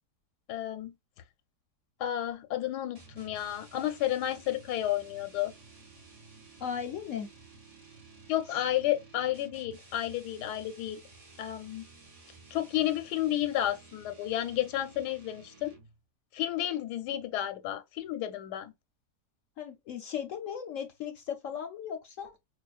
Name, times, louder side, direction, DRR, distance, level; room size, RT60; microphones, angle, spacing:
voice 1, 0.5-0.9 2.0-5.5 8.3-11.0 11.4-11.8 12.5-15.7 16.3-18.7, left 12 dB, 90° left, 1.2 m, -31 dB
sound 1, 3.0-16.0, right 3 dB, 35° right, 0.6 m, -54 dB
voice 2, 6.6-7.3 19.6-22.3, left 8 dB, 65° left, 0.8 m, -37 dB
4.6 x 2.3 x 2.3 m
omnidirectional pair, 1.7 m